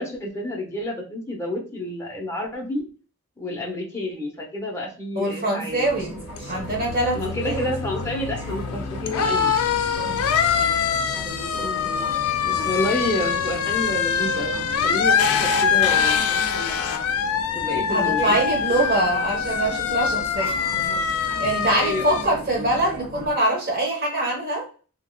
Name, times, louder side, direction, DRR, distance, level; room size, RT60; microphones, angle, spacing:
voice 1, 0.0-2.9 3.4-6.0 7.1-9.6 11.5-11.9 12.4-16.3 17.5-18.4 18.7-18.9 21.7-22.2, left 1 dB, 15° left, -1 dB, 0.8 m, -29 dB
voice 2, 5.2-6.1 6.5-7.6 10.0-10.3 17.9-20.5 21.4-24.7, right 1 dB, 40° right, -1 dB, 1.2 m, -24 dB
sound 1, 5.8-22.2, left 7 dB, 75° left, 0.4 m, -24 dB
sound 2, 5.8-23.3, equal, 10° right, 1.3 m, -37 dB
3.5 x 2.9 x 2.3 m, 0.37 s
head